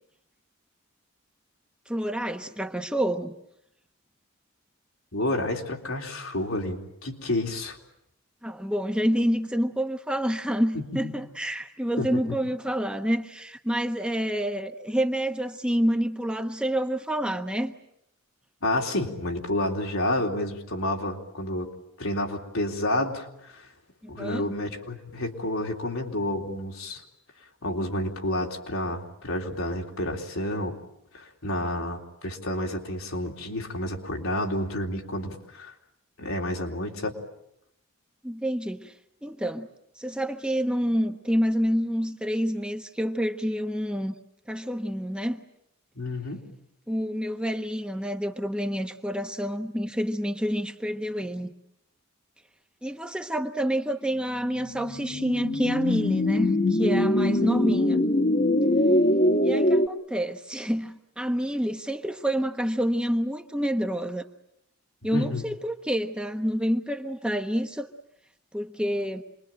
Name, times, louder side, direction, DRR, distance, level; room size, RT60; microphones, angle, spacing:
voice 1, 1.9-3.3 8.4-17.7 24.0-24.5 38.2-38.9 39.2-39.7 40.0-44.1 44.5-45.4 46.9-51.5 52.8-58.0 59.4-64.2 65.0-67.9 68.5-69.2, equal, 5° right, 5 dB, 1.0 m, -28 dB
voice 2, 5.1-7.8 10.7-11.1 12.0-12.2 18.6-21.7 22.0-23.6 24.1-27.0 27.6-30.8 31.1-35.7 36.2-37.1 46.0-46.4 65.1-65.4, left 1 dB, 80° left, 1 dB, 3.5 m, -30 dB
sound 1, 54.3-59.9, left 1 dB, 40° left, 1.5 m, -23 dB
27.5 x 22.0 x 8.9 m, 0.80 s
head